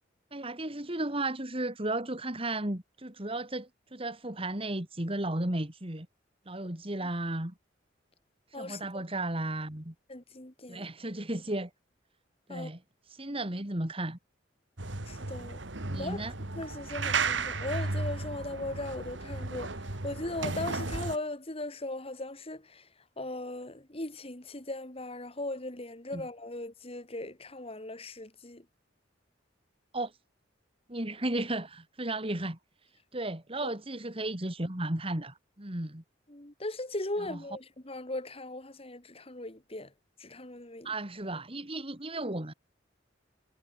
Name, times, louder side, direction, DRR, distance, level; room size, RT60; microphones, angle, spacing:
voice 1, 0.3-6.1 6.5-7.5 8.6-9.9 10.7-11.7 12.5-12.8 13.1-14.2 15.9-16.3 26.1-26.2 29.9-30.1 30.9-32.6 33.1-36.0 37.3-37.4 40.8-42.5, right 1 dB, 30° right, 2.6 m, -34 dB
voice 2, 8.5-9.0 10.1-10.9 12.5-12.7 13.3-13.4 15.1-15.6 16.0-16.2 16.6-22.9 23.2-28.7 33.6-33.7 36.3-39.9 40.2-40.9, left 2 dB, 30° left, 2.5 m, -38 dB
sound 1, 14.8-21.2, right 3 dB, 70° right, 2.3 m, -34 dB
head